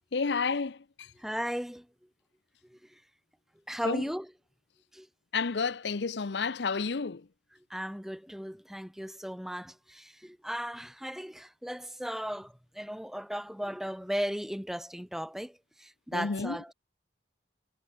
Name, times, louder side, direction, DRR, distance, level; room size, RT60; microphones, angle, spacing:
voice 1, 0.1-0.8 3.9-4.0 5.3-7.2 16.1-16.6, left 4 dB, 75° left, 0.7 m, -30 dB
voice 2, 1.1-1.9 2.6-3.0 3.7-4.3 4.9-5.1 7.5-16.7, equal, ahead, 1.1 m, -36 dB
head